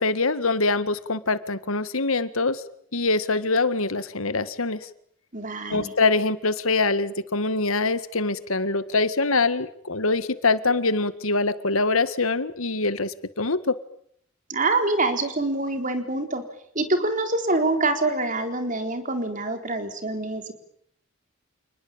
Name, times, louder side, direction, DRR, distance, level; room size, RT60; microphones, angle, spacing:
voice 1, 0.0-2.6 2.9-4.8 5.7-13.7, left 3 dB, 75° left, 13 dB, 1.8 m, -24 dB
voice 2, 5.3-5.9 14.5-16.4 16.7-20.5, right 2 dB, 35° right, 7 dB, 4.0 m, -25 dB
29.0 x 20.0 x 8.9 m, 0.66 s
head